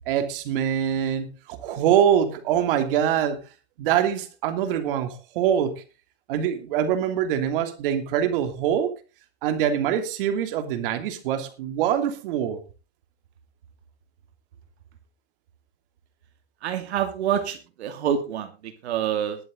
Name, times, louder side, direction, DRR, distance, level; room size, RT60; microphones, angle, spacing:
voice 1, 0.1-3.4 3.8-5.8 6.3-8.9 9.4-12.6, right 9 dB, 55° right, 8 dB, 3.0 m, -24 dB
voice 2, 16.6-19.4, right 9 dB, 80° right, 8 dB, 2.5 m, -27 dB
21.0 x 7.4 x 3.9 m, 0.31 s
supercardioid pair, 155°, 33 cm